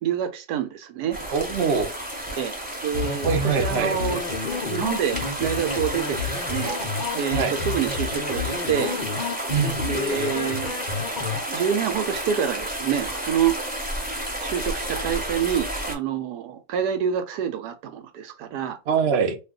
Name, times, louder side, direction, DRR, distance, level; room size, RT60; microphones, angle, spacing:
voice 1, 0.0-1.2 2.3-2.6 2.8-4.2 4.7-6.8 7.1-9.0 9.8-10.8 11.5-13.5 14.4-18.8, right 8 dB, 75° right, 1.1 m, -27 dB
sound 1, 1.1-16.0, right 1 dB, 10° right, 0.6 m, -31 dB
voice 2, 1.3-1.9 3.2-4.0 7.3-7.6 9.5-9.8 18.9-19.4, right 6 dB, 55° right, 0.7 m, -23 dB
sound 2, 2.9-11.4, left 4 dB, 70° left, 0.4 m, -30 dB
2.7 x 2.3 x 3.5 m
omnidirectional pair, 1.8 m